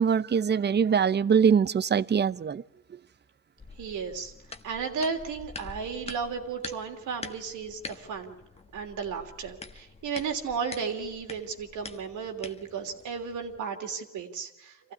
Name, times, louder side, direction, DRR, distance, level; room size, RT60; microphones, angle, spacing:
voice 1, 0.0-2.6, right 7 dB, 35° right, 0.7 m, -23 dB
sound 1, 3.6-13.6, left 3 dB, 20° left, 1.3 m, -46 dB
voice 2, 3.8-4.3 4.6-8.4 8.7-14.9, right 5 dB, 75° right, 3.2 m, -34 dB
25.5 x 15.5 x 9.7 m
cardioid pair, 90°, 30 cm